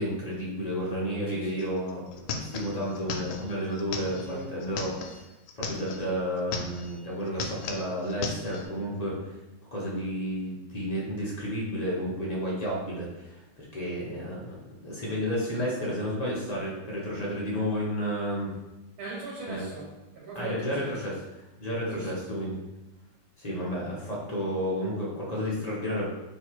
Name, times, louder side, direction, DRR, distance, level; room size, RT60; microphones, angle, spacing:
voice 1, 0.0-5.2 5.6-9.4 9.7-18.5 19.5-19.7 20.3-21.1 21.6-22.6 23.4-26.1, equal, 40° left, -5 dB, 0.6 m, -31 dB
voice 2, 1.3-1.7 4.1-4.6 19.0-21.2 21.9-22.2, right 2 dB, 85° right, -3 dB, 1.9 m, -40 dB
sound 1, 1.6-1.7 1.9-6.1 6.4-7.0 7.3-8.7, left 4 dB, 80° left, 1.4 m, -36 dB
3.2 x 3.2 x 4.5 m, 1.0 s
omnidirectional pair, 2.3 m